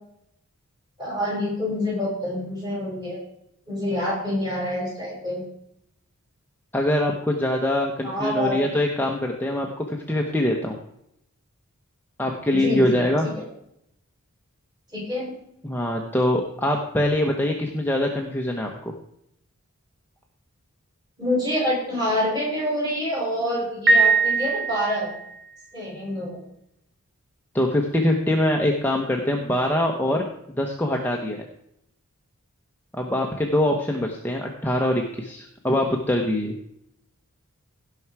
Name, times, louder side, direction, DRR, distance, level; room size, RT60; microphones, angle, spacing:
voice 1, 1.0-3.2 3.7-5.4 8.0-8.6 12.5-13.0 13.4-13.5 14.9-15.3 21.2-25.1 25.7-26.4, left 1 dB, 20° right, -5 dB, 5.5 m, -26 dB
voice 2, 6.7-10.8 12.2-13.3 15.6-18.9 27.5-30.3 30.6-31.4 32.9-36.5, left 1 dB, 10° left, 0 dB, 0.9 m, -23 dB
Piano, 23.9-25.3, right 3 dB, 50° right, 1.7 m, -20 dB
17.0 x 5.8 x 4.7 m, 0.77 s
head